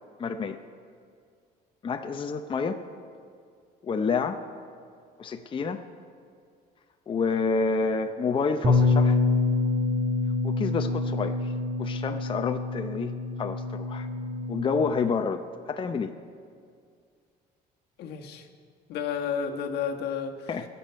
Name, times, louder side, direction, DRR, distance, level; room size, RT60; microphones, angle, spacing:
voice 1, 0.2-0.6 1.8-2.8 3.8-4.4 5.2-5.8 7.1-9.2 10.4-11.5 11.8-14.1 14.5-16.1 20.5-20.7, left 5 dB, 30° left, 7 dB, 0.6 m, -29 dB
Bass guitar, 8.6-14.9, left 3 dB, 30° right, 1.9 m, -26 dB
voice 2, 18.0-18.5 18.9-20.6, left 7 dB, 80° left, 3 dB, 1.3 m, -31 dB
16.0 x 7.0 x 9.2 m, 2.2 s
cardioid pair, 110°, 17 cm